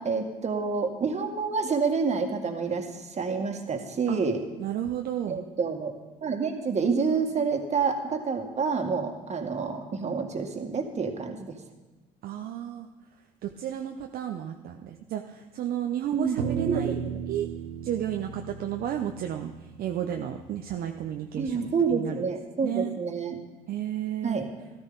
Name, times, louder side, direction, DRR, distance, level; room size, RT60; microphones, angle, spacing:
voice 1, 0.0-4.4 5.3-5.9 6.2-11.6 16.1-16.4 16.6-17.2 21.4-23.4 24.2-24.5, right 5 dB, 40° right, 4 dB, 1.9 m, -28 dB
voice 2, 4.6-5.4 12.2-12.9 13.4-17.0 17.3-17.5 17.8-22.3 22.6-23.0 23.7-24.4, right 10 dB, 60° right, 4 dB, 0.8 m, -32 dB
sound 1, 16.4-20.9, right 9 dB, 85° right, 0.9 m, -35 dB
13.5 x 12.5 x 4.0 m, 1.1 s
hypercardioid pair, 55°, 18 cm